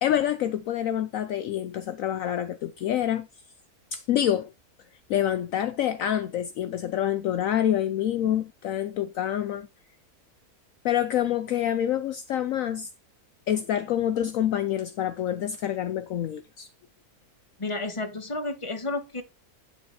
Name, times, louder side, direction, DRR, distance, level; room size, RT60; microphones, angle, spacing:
voice 1, 0.0-3.3 3.9-4.5 5.1-9.7 10.8-12.9 13.5-16.7, left 11 dB, 70° left, 1.0 m, -27 dB
voice 2, 17.6-19.2, left 2 dB, 20° left, 1.6 m, -31 dB
9.6 x 6.7 x 4.2 m
omnidirectional pair, 1.6 m